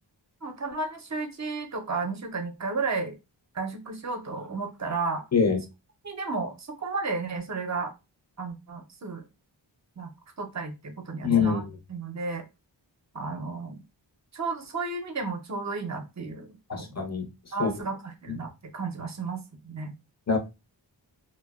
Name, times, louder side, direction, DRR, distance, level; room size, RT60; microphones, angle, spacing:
voice 1, 0.4-3.2 3.5-5.2 6.0-7.9 8.4-9.2 10.0-10.1 10.4-11.6 11.9-12.4 13.1-13.8 14.3-16.5 16.7-16.9 17.5-19.9, right 4 dB, 40° right, 0.6 m, -33 dB
voice 2, 11.2-11.6 16.7-17.3 17.6-17.7 20.3-20.4, left 5 dB, 35° left, 0.6 m, -24 dB
2.5 x 2.2 x 2.3 m
wide cardioid pair, 55°, 45 cm